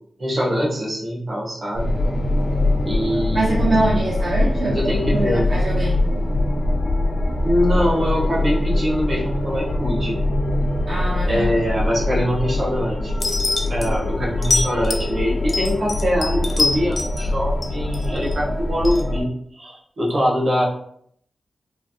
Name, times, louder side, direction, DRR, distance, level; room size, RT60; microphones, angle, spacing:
voice 1, 0.2-1.9 2.8-3.8 4.7-5.5 7.4-10.2 11.3-13.1 13.7-20.6, equal, 50° right, -4 dB, 1.0 m, -23 dB
sound 1, 1.7-19.2, left 1 dB, 85° left, 0.7 m, -23 dB
voice 2, 3.3-4.8 5.1-6.0 10.9-11.5 12.1-12.2, right 2 dB, 70° right, -6 dB, 0.6 m, -23 dB
sound 2, 13.2-13.9 14.4-15.1 15.5-17.2 17.6-18.4 18.8-19.0, left 2 dB, 40° left, 0.5 m, -24 dB
3.1 x 2.0 x 2.7 m, 0.67 s
wide cardioid pair, 110°, 0 cm